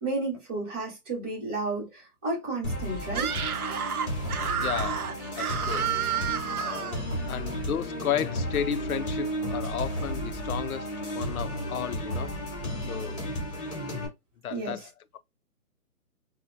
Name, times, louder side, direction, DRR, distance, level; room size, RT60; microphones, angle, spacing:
voice 1, 0.0-3.3 14.5-14.9, right 2 dB, 15° right, 1.0 m, -32 dB
sound 1, 2.6-14.1, equal, 20° left, 1.3 m, -33 dB
Screaming, 3.1-7.0, right 8 dB, 70° right, 0.7 m, -30 dB
voice 2, 4.6-7.0 7.3-12.4 12.9-13.2 14.4-15.2, left 9 dB, 65° left, 0.5 m, -34 dB
4.2 x 2.1 x 2.4 m
hypercardioid pair, 170°, 46 cm